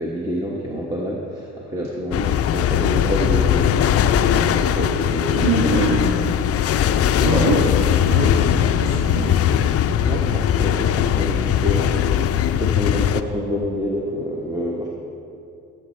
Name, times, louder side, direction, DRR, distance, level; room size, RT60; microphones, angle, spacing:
voice 1, 0.0-6.0 6.9-7.5 10.0-12.0 12.5-14.9, equal, 10° right, -3 dB, 1.2 m, -27 dB
sound 1, 2.1-13.2, left 10 dB, 50° left, 0.4 m, -19 dB
voice 2, 5.3-6.1 7.2-7.6 8.0-9.7, right 2 dB, 85° right, -8 dB, 2.4 m, -23 dB
15.5 x 8.1 x 3.2 m, 2.6 s
cardioid pair, 90°, 30 cm